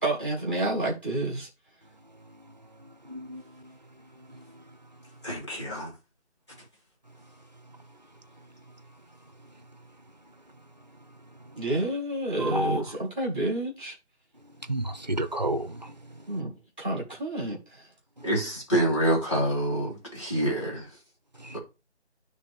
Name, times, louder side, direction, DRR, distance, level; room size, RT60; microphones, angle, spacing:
voice 1, 0.0-1.5 11.5-13.9 16.3-16.5 16.8-17.9, right 1 dB, 10° left, 1.3 m, -29 dB
voice 2, 3.1-3.4 12.4-12.8 14.7-15.9 21.4-21.6, right 1 dB, 40° right, 0.6 m, -30 dB
voice 3, 5.2-5.9 18.2-20.9 21.5-21.6, right 1 dB, 25° left, 3.4 m, -27 dB
9.9 x 3.4 x 4.6 m
figure-of-eight pair, 175°, 34 cm